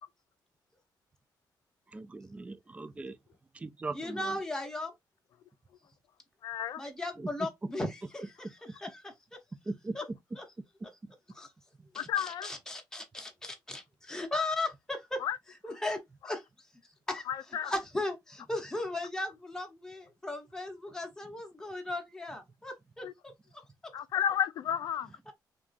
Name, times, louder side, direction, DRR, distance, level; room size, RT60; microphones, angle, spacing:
voice 1, 1.9-3.2 3.5-4.4 7.2-7.5 9.7-10.2 11.8-11.9, right 3 dB, 20° right, 0.3 m, -39 dB
voice 2, 3.9-4.9 6.8-9.1 9.9-10.0 10.4-10.5 11.3-11.5 11.9-15.2 15.6-16.0 16.2-16.4 17.1-17.2 17.6-23.1 25.3-25.4, left 2 dB, 10° left, 0.7 m, -37 dB
voice 3, 6.4-6.8 12.0-12.5 15.2-15.4 17.3-17.7 23.0-23.1 23.9-25.1, left 9 dB, 65° left, 0.3 m, -32 dB
2.9 x 2.3 x 2.4 m
cardioid pair, 120°, 7 cm